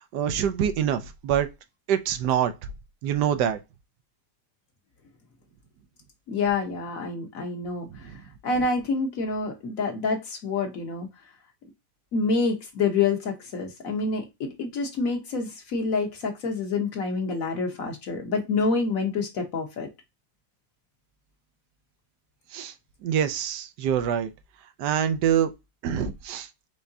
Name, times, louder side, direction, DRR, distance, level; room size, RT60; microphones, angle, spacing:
voice 1, 0.1-1.5 1.9-2.5 3.0-3.6 7.9-8.2 22.5-22.7 23.0-24.3 24.8-25.5 25.8-26.5, right 9 dB, 80° right, 1.3 m, -25 dB
voice 2, 6.3-7.9 8.4-11.1 12.1-19.9, left 4 dB, 60° left, 1.3 m, -27 dB
4.9 x 3.4 x 2.7 m
omnidirectional pair, 1.8 m